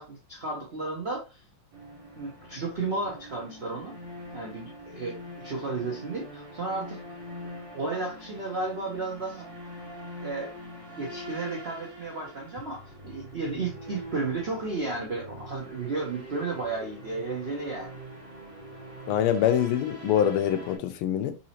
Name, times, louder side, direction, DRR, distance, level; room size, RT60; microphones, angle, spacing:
voice 1, 0.0-1.4 2.2-4.0 4.3-7.0 7.7-9.5 10.2-10.5 11.0-18.0, right 3 dB, 85° right, 0.5 m, -33 dB
sound 1, 1.7-20.8, equal, 35° right, 0.5 m, -43 dB
voice 2, 19.1-21.3, left 10 dB, 85° left, 1.5 m, -24 dB
4.1 x 2.8 x 2.8 m
omnidirectional pair, 2.3 m